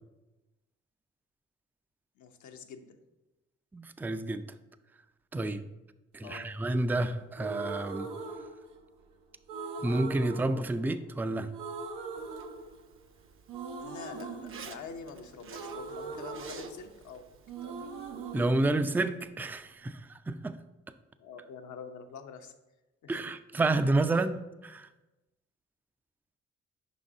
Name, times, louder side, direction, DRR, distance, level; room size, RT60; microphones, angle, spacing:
voice 1, 2.2-3.0 6.2-6.5 13.8-17.9 21.2-22.5 23.0-23.2, left 6 dB, 70° left, 6 dB, 0.7 m, -46 dB
voice 2, 3.7-4.4 5.3-5.7 6.1-8.1 9.8-11.5 18.3-20.6 23.1-24.9, right 2 dB, 5° right, 11 dB, 0.3 m, -30 dB
sound 1, 7.4-9.0 9.5-11.2 11.5-13.1 13.5-17.2 17.5-19.5, right 4 dB, 90° right, 0.7 m, -41 dB
Zipper (clothing), 12.2-18.9, right 6 dB, 45° right, 0.6 m, -51 dB
5.2 x 3.9 x 4.9 m, 1.0 s
supercardioid pair, 55°, 30 cm